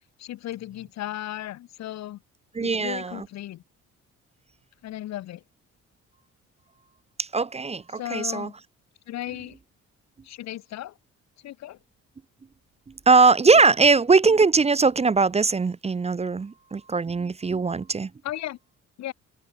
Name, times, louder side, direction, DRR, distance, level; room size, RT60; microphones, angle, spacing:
voice 1, 0.2-2.2 2.6-3.6 4.8-5.4 7.9-8.6 9.1-9.6 10.2-11.0 11.4-11.8 18.2-18.6 19.0-19.1, left 13 dB, 65° left, 0.6 m, -35 dB
voice 2, 2.5-3.2 7.2-8.5 13.1-18.1, right 4 dB, 20° right, 0.6 m, -20 dB
open air
cardioid pair, 90°, 30 cm